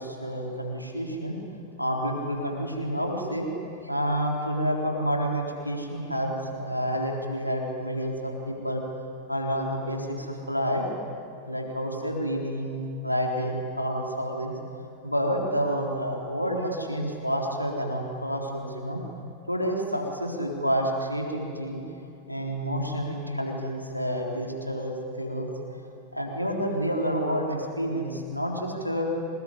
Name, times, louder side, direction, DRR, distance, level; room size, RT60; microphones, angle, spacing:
voice 1, 0.0-1.4 1.8-3.5 3.8-8.9 9.3-10.9 11.4-14.5 15.0-19.0 19.5-21.8 22.3-25.8 26.1-29.0, equal, 90° left, 0 dB, 3.9 m, -29 dB
26.5 x 20.5 x 9.8 m, 2.6 s
figure-of-eight pair, 90°, 0 cm